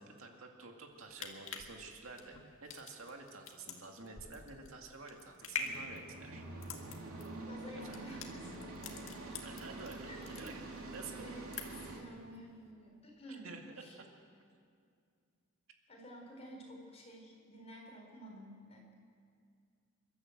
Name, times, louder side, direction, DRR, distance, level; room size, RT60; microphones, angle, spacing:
voice 1, 0.0-6.5 7.8-8.2 9.4-11.3 13.4-13.8, right 3 dB, 65° right, 2 dB, 2.3 m, -50 dB
sound 1, 0.9-9.9 10.2-11.0 11.3-12.0 12.3-12.4, left 5 dB, 65° left, 2.0 m, -45 dB
sound 2, 5.6-12.0, right 2 dB, 90° right, 3.0 m, -46 dB
voice 2, 7.5-9.2 10.0-13.6 13.8-14.0 15.9-18.9, equal, 30° left, 0 dB, 4.5 m, -52 dB
28.0 x 12.5 x 7.9 m, 2.3 s
head